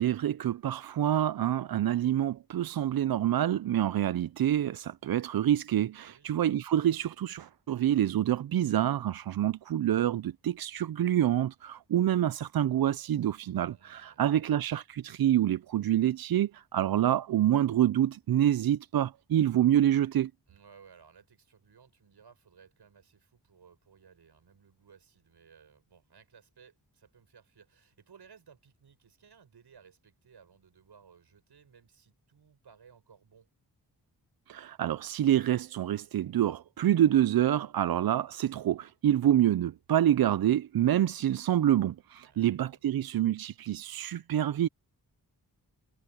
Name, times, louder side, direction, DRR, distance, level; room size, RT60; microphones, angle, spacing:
voice 1, 0.0-20.3 34.5-44.7, right 11 dB, 65° right, 0.5 m, -27 dB
voice 2, 6.0-6.3 13.7-14.6 20.5-33.5 42.2-42.9, right 6 dB, 85° right, 7.3 m, -59 dB
cardioid pair, 70°, 39 cm